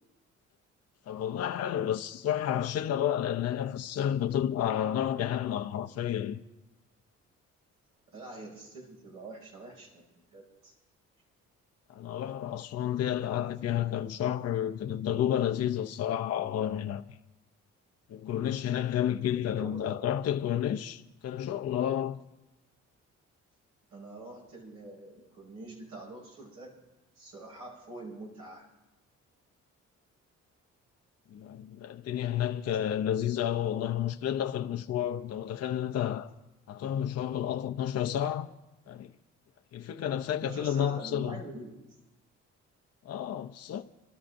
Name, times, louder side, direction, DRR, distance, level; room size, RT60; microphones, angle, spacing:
voice 1, 1.1-6.4 11.9-17.0 18.1-22.2 31.3-36.3 36.7-38.5 38.9-39.1 39.7-41.4 43.0-43.8, left 10 dB, 55° left, 0.6 m, -31 dB
voice 2, 8.1-10.1 10.3-10.7 19.3-20.0 23.9-26.9 27.1-28.7 40.4-41.8, right 2 dB, 90° right, 6.0 m, -45 dB
29.5 x 13.0 x 2.6 m
cardioid pair, 90°, 30 cm